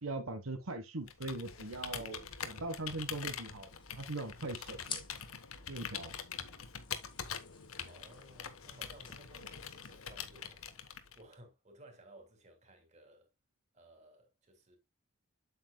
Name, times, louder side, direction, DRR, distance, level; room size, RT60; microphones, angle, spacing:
voice 1, 0.0-5.0 5.7-6.1, right 2 dB, 80° right, 1.2 m, -41 dB
Computer keyboard, 1.0-11.3, left 8 dB, 80° left, 1.2 m, -44 dB
sound 1, 3.4-11.1, left 5 dB, 25° left, 1.8 m, -53 dB
voice 2, 7.8-10.6 11.2-13.3 13.7-14.8, right 1 dB, 35° right, 2.7 m, -58 dB
8.3 x 7.9 x 2.2 m
head